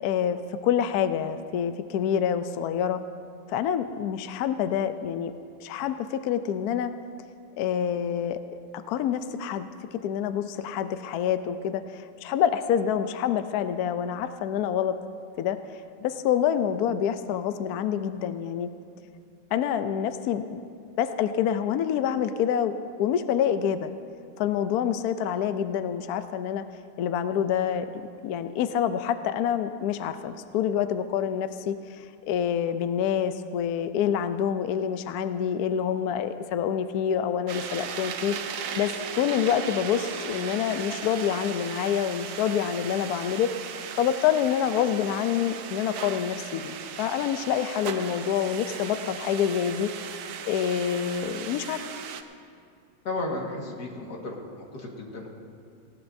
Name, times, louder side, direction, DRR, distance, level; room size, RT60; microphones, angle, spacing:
voice 1, 0.0-3.0 3.5-5.3 5.6-6.9 7.6-8.4 8.9-9.7 9.9-15.0 15.4-15.6 16.0-18.7 19.5-20.7 21.0-23.9 24.4-26.6 27.0-43.5 43.9-49.9 50.4-51.8, left 9 dB, 85° left, 10 dB, 0.8 m, -27 dB
sound 1, 37.5-52.2, right 7 dB, 65° right, 1.0 m, -37 dB
voice 2, 53.0-54.4 54.8-55.3, left 2 dB, 50° left, 0 dB, 2.1 m, -33 dB
19.0 x 16.5 x 2.7 m, 2.4 s
omnidirectional pair, 2.3 m